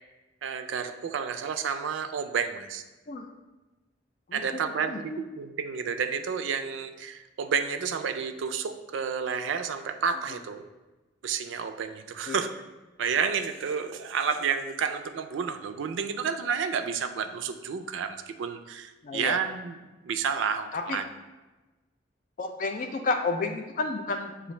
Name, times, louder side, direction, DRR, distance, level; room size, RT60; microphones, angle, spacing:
voice 1, 0.4-2.8 4.3-10.6 11.2-12.5 13.0-21.1, right 6 dB, 90° right, 9 dB, 0.3 m, -30 dB
voice 2, 4.3-5.2 12.3-12.4 19.0-19.4 20.7-21.0 22.4-24.5, left 3 dB, 45° left, 4 dB, 0.3 m, -31 dB
6.7 x 2.4 x 3.1 m, 1.2 s
head